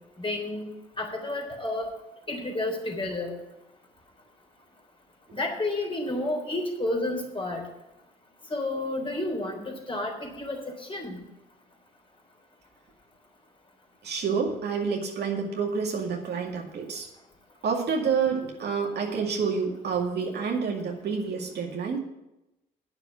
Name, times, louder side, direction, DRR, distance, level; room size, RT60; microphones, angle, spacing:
voice 1, 0.2-0.7 1.0-1.9 2.3-3.3 5.3-7.6 8.5-11.2, left 2 dB, 25° left, 1 dB, 3.7 m, -31 dB
voice 2, 14.0-17.1 17.6-22.0, right 5 dB, 55° right, 0 dB, 2.2 m, -28 dB
9.0 x 6.9 x 8.4 m, 0.93 s
hypercardioid pair, 55°, 20 cm